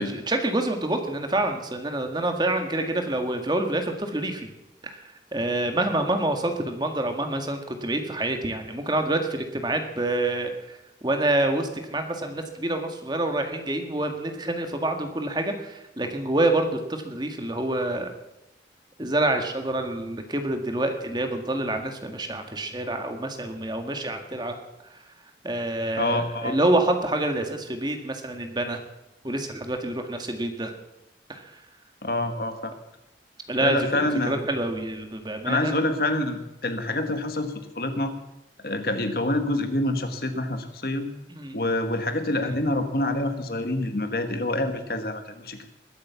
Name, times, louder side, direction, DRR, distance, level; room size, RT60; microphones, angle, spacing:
voice 1, 0.0-4.5 4.8-10.8 11.0-18.1 19.0-24.6 24.9-25.0 25.4-28.8 29.2-30.7 31.3-31.6 33.5-35.7 41.3-41.7, right 2 dB, 25° right, 5 dB, 1.8 m, -27 dB
voice 2, 26.0-26.5 32.0-32.7 33.6-34.4 35.4-38.1 38.6-41.1 41.5-45.6, left 1 dB, 55° left, 7 dB, 1.6 m, -26 dB
20.5 x 8.5 x 7.1 m, 0.92 s
head